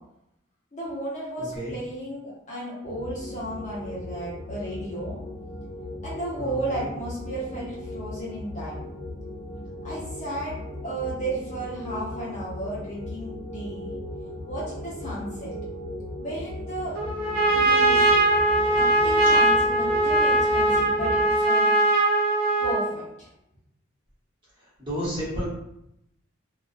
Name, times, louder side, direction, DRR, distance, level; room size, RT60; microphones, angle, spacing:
voice 1, 0.7-5.2 6.0-8.8 9.8-14.0 14.5-15.5 16.2-17.0 17.5-18.1 18.7-21.7 22.6-23.3, right 1 dB, 35° left, -7 dB, 0.7 m, -34 dB
voice 2, 1.4-1.7 6.4-6.9 24.6-25.4, equal, 25° right, -10 dB, 1.0 m, -32 dB
sound 1, 2.8-21.2, left 1 dB, 70° left, 0.7 m, -37 dB
Trumpet, 16.9-22.9, right 2 dB, 45° right, 0.6 m, -21 dB
2.3 x 2.3 x 2.4 m, 0.81 s
head